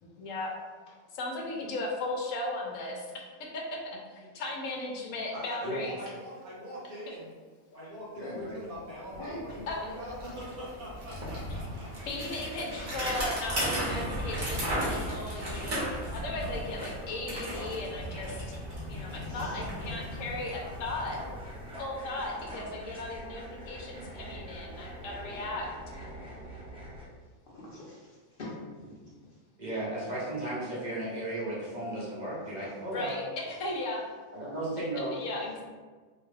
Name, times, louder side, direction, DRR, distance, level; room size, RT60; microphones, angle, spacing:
voice 1, 0.0-0.5 1.1-3.1 3.5-3.6 4.1-6.0 9.7-9.8 12.1-18.4 18.9-21.2 21.8-25.7 32.9-34.0 35.1-35.6, left 2 dB, 70° left, -1 dB, 1.0 m, -36 dB
voice 2, 5.3-7.3 7.7-12.9 17.5-17.7, equal, 80° right, -8 dB, 1.7 m, -43 dB
voice 3, 8.2-8.6 9.2-9.4 9.9-10.0 10.5-10.6 14.9-15.4 15.7-16.0 19.2-19.6 27.5-28.0 28.4-29.0 32.6-32.7, left 2 dB, 50° left, -6 dB, 0.7 m, -43 dB
Bicycle, 8.7-8.8 9.1-22.0, equal, 60° right, 1.3 m, -36 dB
sound 1, 12.9-27.0, equal, 5° right, 0.7 m, -44 dB
voice 4, 29.6-33.2 34.3-35.2, right 1 dB, 40° right, -7 dB, 0.8 m, -34 dB
3.8 x 2.3 x 3.2 m, 1.4 s
omnidirectional pair, 1.5 m